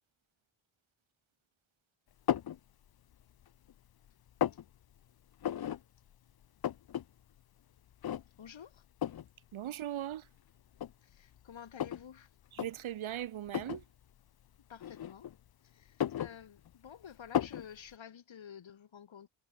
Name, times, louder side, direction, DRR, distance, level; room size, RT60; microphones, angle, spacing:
sound 1, 2.3-2.6 3.1-3.8 4.1-4.6 5.4-5.8 6.1-6.2 6.4-7.0 7.4-7.5 8.0-8.5 9.0-9.3 10.1-10.2 10.7-12.1 12.5-12.7 13.5-13.8 14.8-15.5 15.8-16.9 17.3-17.7, left 10 dB, 50° left, 0.7 m, -34 dB
voice 1, 8.4-8.8 11.0-12.3 14.7-15.3 15.6-19.3, left 8 dB, 70° left, 4.3 m, -51 dB
voice 2, 9.5-10.3 12.5-13.8, right 12 dB, 80° right, 1.0 m, -39 dB
wide cardioid pair, 150°, 47 cm